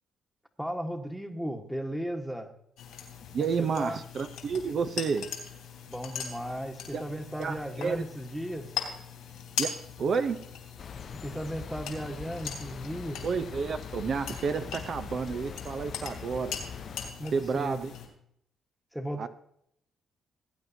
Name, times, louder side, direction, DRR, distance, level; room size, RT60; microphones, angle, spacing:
voice 1, 0.6-2.5 3.4-4.0 5.9-8.7 11.2-13.2 17.2-17.8 18.9-19.3, equal, 5° right, 6 dB, 1.3 m, -36 dB
sound 1, 2.8-18.1, left 7 dB, 90° left, 2.8 m, -40 dB
voice 2, 3.3-5.3 6.9-7.0 7.4-8.0 9.6-10.4 13.2-16.6 17.3-17.9 19.2-19.3, right 5 dB, 55° right, 10 dB, 0.6 m, -30 dB
sound 2, 10.8-17.1, left 6 dB, 50° left, 0.4 m, -43 dB
18.0 x 9.0 x 2.7 m, 0.71 s
cardioid pair, 90°, 0 cm